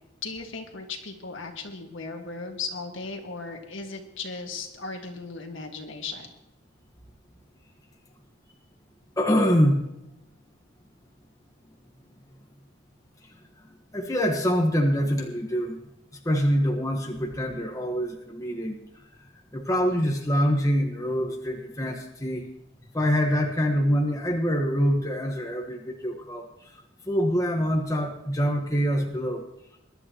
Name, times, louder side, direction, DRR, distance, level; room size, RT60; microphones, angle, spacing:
voice 1, 0.2-6.3, left 4 dB, 65° left, 3 dB, 1.9 m, -36 dB
voice 2, 9.2-9.9 13.6-13.7 13.9-15.8 16.2-18.8 19.5-22.5 22.9-26.5 26.7-29.5, equal, 15° left, 2 dB, 1.3 m, -25 dB
22.0 x 11.5 x 3.0 m, 0.87 s
head